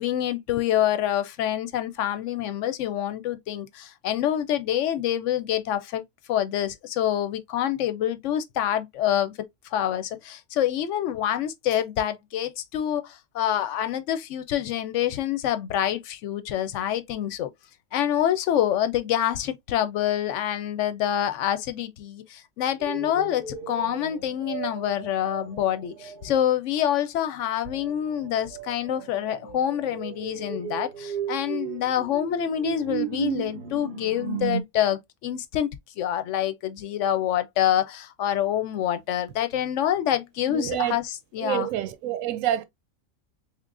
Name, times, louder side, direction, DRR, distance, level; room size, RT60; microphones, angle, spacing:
voice 1, 0.0-6.0 6.3-9.3 9.7-17.5 17.9-35.7 36.0-41.7, left 11 dB, 70° left, 0.8 m, -26 dB
sound 1, 22.8-26.5 27.6-34.6, right 9 dB, 60° right, 0.5 m, -35 dB
voice 2, 40.5-41.0 41.4-42.6, right 12 dB, 80° right, 1.0 m, -27 dB
3.7 x 3.0 x 2.4 m
omnidirectional pair, 1.4 m